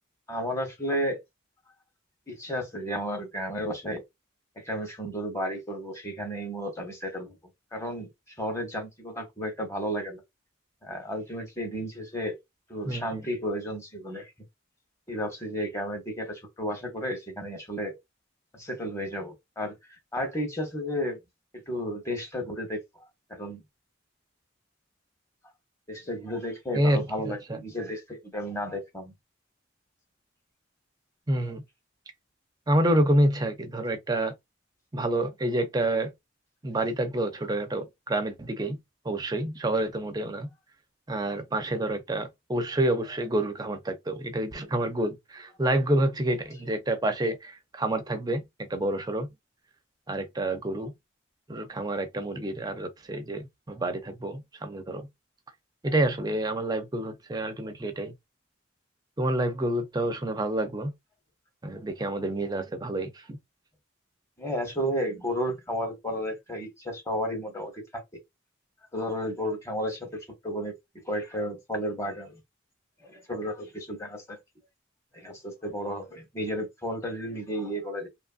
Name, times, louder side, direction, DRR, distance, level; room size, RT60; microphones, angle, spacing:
voice 1, 0.3-1.2 2.3-4.0 4.6-7.4 7.7-8.1 8.4-10.2 10.8-12.4 12.7-14.3 15.1-17.9 18.5-21.2 21.7-22.8 23.3-23.6 25.9-29.1 64.4-68.0 68.9-70.7 71.1-72.4 73.0-74.4 75.1-78.1, equal, 15° left, 0.8 m, -33 dB
voice 2, 12.8-13.2 26.7-27.6 31.3-31.6 32.7-34.3 34.9-36.1 36.6-38.8 39.1-40.5 41.1-49.3 50.1-50.9 51.5-55.1 55.8-58.1 59.2-60.9 61.6-63.4, right 1 dB, 20° right, 0.4 m, -28 dB
2.8 x 2.5 x 2.4 m
head